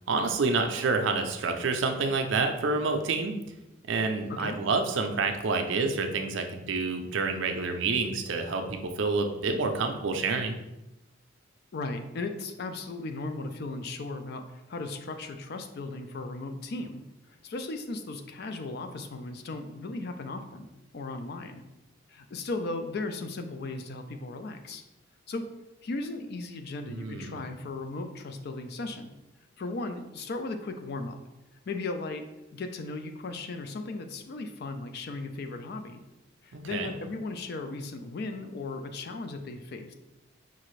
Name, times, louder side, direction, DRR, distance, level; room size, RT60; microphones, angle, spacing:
voice 1, 0.1-3.3 3.9-10.6 26.9-27.4 36.5-36.9, right 4 dB, 60° right, 5 dB, 0.5 m, -28 dB
voice 2, 11.7-17.0 17.4-20.7 20.9-21.6 22.1-24.8 25.3-25.5 25.8-29.1 29.6-31.2 31.7-32.2 32.5-36.0 36.4-39.9, left 3 dB, 50° left, 7 dB, 0.4 m, -36 dB
5.5 x 2.5 x 3.1 m, 0.95 s
head